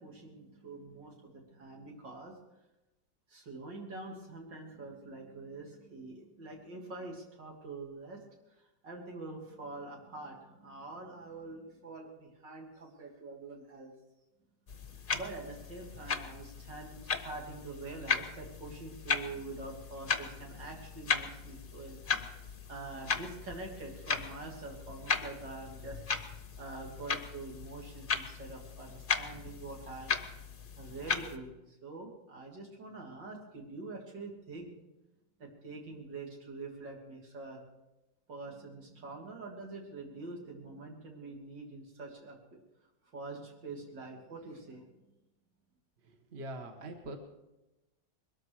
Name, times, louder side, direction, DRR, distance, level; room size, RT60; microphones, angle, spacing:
voice 1, 0.0-2.3 3.3-8.2 8.8-13.9 15.1-22.3 22.7-26.0 26.6-30.4 30.8-34.7 35.4-37.6 38.3-42.6 43.1-44.8, right 3 dB, 70° right, -1 dB, 3.6 m, -45 dB
sound 1, 14.7-31.4, left 5 dB, 35° left, 0.9 m, -37 dB
voice 2, 46.0-47.2, right 1 dB, 35° right, 5 dB, 1.5 m, -43 dB
21.5 x 13.0 x 4.8 m, 0.99 s
omnidirectional pair, 2.0 m